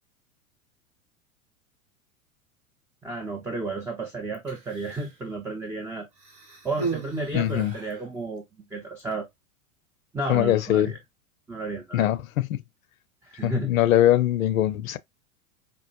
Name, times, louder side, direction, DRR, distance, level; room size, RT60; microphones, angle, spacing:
voice 1, 3.0-6.1 6.6-8.4 8.7-9.3 10.1-11.0 11.5-12.1 13.2-13.8, right 3 dB, 5° right, 0.5 m, -32 dB
Human voice, 4.3-5.2 6.1-8.1 9.0-9.1, right 4 dB, 50° right, 1.3 m, -36 dB
voice 2, 7.3-7.7 10.3-10.9 11.9-12.6 13.4-15.0, left 13 dB, 70° left, 0.6 m, -22 dB
5.0 x 2.0 x 2.9 m
figure-of-eight pair, 90°, 42 cm